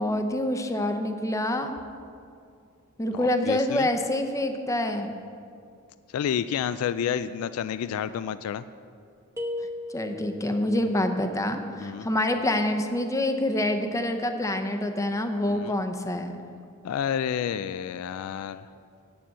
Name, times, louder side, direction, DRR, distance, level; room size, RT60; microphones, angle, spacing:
voice 1, 0.0-1.8 3.0-5.1 9.9-16.4, left 1 dB, 15° left, 6 dB, 0.6 m, -26 dB
voice 2, 3.1-3.9 6.1-8.7 11.8-12.1 15.4-15.7 16.8-18.6, left 8 dB, 75° left, 15 dB, 0.3 m, -30 dB
sound 1, 9.4-10.5, left 2 dB, 15° right, 0.9 m, -34 dB
9.0 x 7.0 x 7.4 m, 2.4 s
head